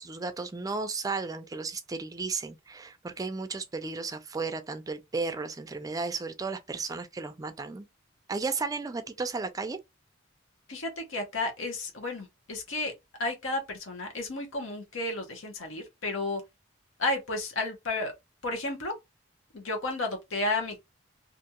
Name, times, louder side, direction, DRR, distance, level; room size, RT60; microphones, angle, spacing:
voice 1, 0.0-7.9 8.3-9.8, right 4 dB, 20° right, 0.4 m, -34 dB
voice 2, 10.7-12.9 13.2-16.4 17.0-18.1 18.4-18.9 19.5-20.8, left 2 dB, 90° left, 0.9 m, -32 dB
2.5 x 2.3 x 2.8 m
head